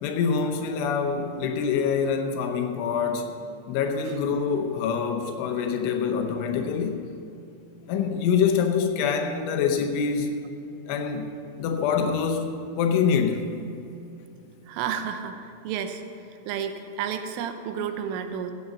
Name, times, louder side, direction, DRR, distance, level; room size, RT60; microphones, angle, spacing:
voice 1, 0.0-3.4 3.7-7.0 7.9-10.4 10.9-11.3 11.6-13.5, left 6 dB, 80° left, 4 dB, 3.1 m, -25 dB
voice 2, 14.7-16.0 16.5-18.5, right 8 dB, 80° right, 7 dB, 3.3 m, -31 dB
14.5 x 8.6 x 6.7 m, 2.6 s
omnidirectional pair, 5.8 m